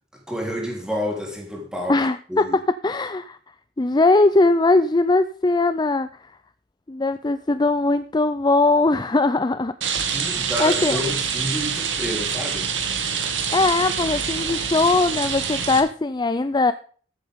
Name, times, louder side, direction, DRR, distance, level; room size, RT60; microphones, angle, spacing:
voice 1, 0.1-2.6 10.1-12.7, equal, 5° right, 3.7 m, -29 dB
voice 2, 1.9-2.5 2.8-3.4 3.8-6.1 6.9-9.7 10.2-10.3 10.6-11.0 13.5-16.7, left 2 dB, 25° left, 0.5 m, -20 dB
Rain, 9.8-15.8, right 6 dB, 85° right, 2.3 m, -26 dB
14.5 x 8.8 x 3.7 m
head